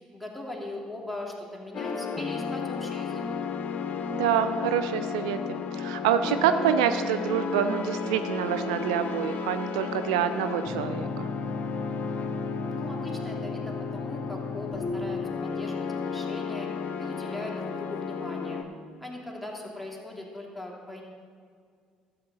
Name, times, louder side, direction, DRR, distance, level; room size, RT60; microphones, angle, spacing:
voice 1, 0.1-3.2 12.7-16.7 17.0-18.7 19.0-21.0, left 1 dB, ahead, -2 dB, 2.5 m, -40 dB
sound 1, 1.7-18.6, left 5 dB, 50° left, 0.8 m, -33 dB
voice 2, 4.1-11.3, right 9 dB, 75° right, 10 dB, 0.4 m, -27 dB
sound 2, 14.7-16.4, left 4 dB, 20° left, 2.6 m, -38 dB
13.0 x 7.8 x 4.1 m, 2.1 s
hypercardioid pair, 55°, 3 cm